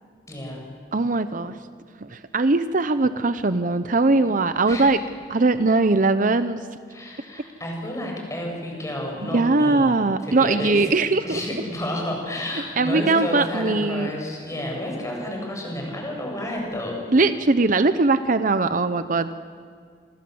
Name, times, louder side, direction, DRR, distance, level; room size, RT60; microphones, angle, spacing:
voice 1, 0.3-0.6 4.7-4.9 6.9-9.9 10.2-10.9 11.2-17.0, left 1 dB, 20° left, 0 dB, 7.3 m, -30 dB
voice 2, 0.9-1.6 2.0-5.0 5.3-6.6 9.2-11.4 12.8-14.1 17.1-19.3, right 3 dB, 50° right, 11 dB, 0.8 m, -20 dB
26.5 x 26.0 x 7.9 m, 2.1 s
head